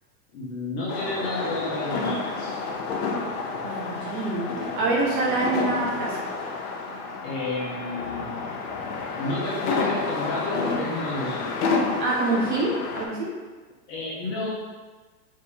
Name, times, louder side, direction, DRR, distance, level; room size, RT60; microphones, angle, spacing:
voice 1, 0.3-2.6 7.2-8.4 9.2-11.6 13.9-14.5, left 2 dB, 25° left, -5 dB, 0.6 m, -31 dB
sound 1, 0.9-13.1, left 4 dB, 65° left, 0.8 m, -30 dB
voice 2, 3.6-6.2 12.0-13.3, right 3 dB, 30° right, -3 dB, 0.6 m, -26 dB
3.6 x 2.6 x 4.4 m, 1.3 s
supercardioid pair, 155°, 48 cm